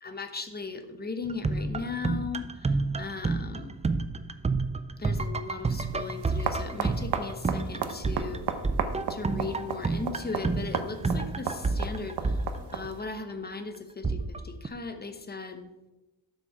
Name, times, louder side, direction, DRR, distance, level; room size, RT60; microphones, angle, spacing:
voice 1, 0.0-3.7 5.0-8.5 9.1-12.4 12.7-15.7, left 4 dB, 20° left, 8 dB, 0.9 m, -38 dB
sound 1, 1.2-13.2 14.0-14.7, right 3 dB, 15° right, 0.3 m, -30 dB
sound 2, 5.7-13.0, right 6 dB, 55° right, 0.9 m, -35 dB
11.5 x 6.5 x 4.8 m, 1.1 s
wide cardioid pair, 145°, 48 cm